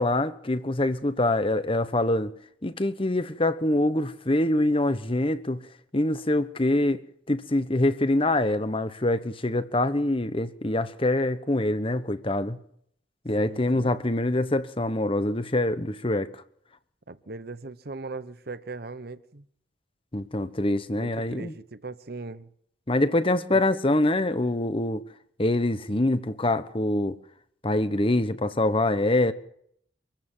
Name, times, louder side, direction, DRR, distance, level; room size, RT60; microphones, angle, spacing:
voice 1, 0.0-2.3 2.6-5.6 5.9-7.0 7.3-12.6 13.2-16.4 20.1-21.5 22.9-25.0 25.4-27.2 27.6-29.3, left 1 dB, 30° left, 1.2 m, -25 dB
voice 2, 13.4-13.9 17.1-19.4 20.9-22.5 23.5-23.6, right 3 dB, 55° right, 1.0 m, -39 dB
25.5 x 15.0 x 7.5 m
head